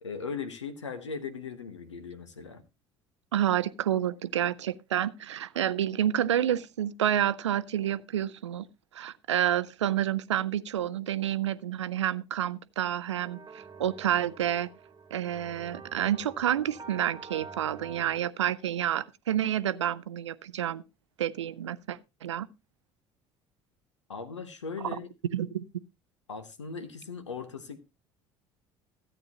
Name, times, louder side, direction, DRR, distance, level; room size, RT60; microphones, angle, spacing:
voice 1, 0.0-2.6 24.1-25.1 26.3-27.8, left 5 dB, 80° left, 0.9 m, -38 dB
voice 2, 3.3-8.7 8.9-14.7 15.1-20.8 21.2-22.5 24.9-25.0 25.3-25.6, right 11 dB, 75° right, 0.4 m, -29 dB
sound 1, 13.2-18.2, right 5 dB, 25° right, 1.4 m, -47 dB
14.0 x 8.7 x 2.8 m
figure-of-eight pair, 60°, 15 cm